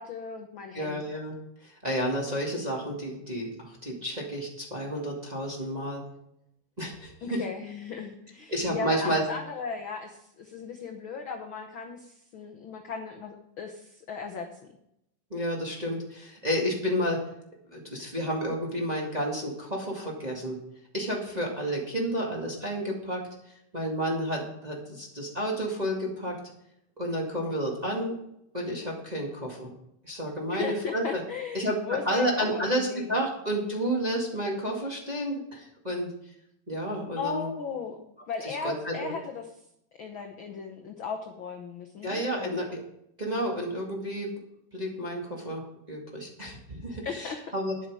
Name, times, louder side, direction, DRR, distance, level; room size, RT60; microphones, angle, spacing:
voice 1, 0.0-1.0 7.2-14.5 30.5-33.2 37.2-38.0 38.3-39.5 40.0-42.6 47.0-47.5, left 5 dB, 70° left, 4 dB, 1.2 m, -36 dB
voice 2, 0.7-1.3 1.6-6.0 6.8-7.4 8.5-9.2 15.3-17.2 17.7-20.6 20.9-23.2 23.7-26.3 27.0-28.1 28.5-29.7 30.0-31.2 31.5-36.1 36.7-37.5 38.4-39.2 42.0-42.8 43.2-44.3 44.7-47.7, equal, 15° right, -1 dB, 1.5 m, -31 dB
12.0 x 9.7 x 4.8 m, 0.78 s
omnidirectional pair, 3.6 m